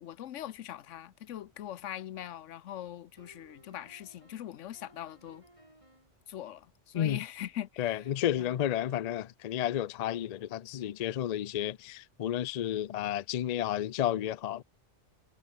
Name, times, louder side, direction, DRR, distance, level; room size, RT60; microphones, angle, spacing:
voice 1, 0.0-5.4 6.3-8.1 8.4-8.6, left 11 dB, 85° left, 1.0 m, -42 dB
sound 1, 3.2-6.2 7.8-9.3, right 1 dB, 25° right, 5.7 m, -59 dB
voice 2, 7.8-14.6, left 11 dB, 60° left, 0.4 m, -31 dB
omnidirectional pair, 1.2 m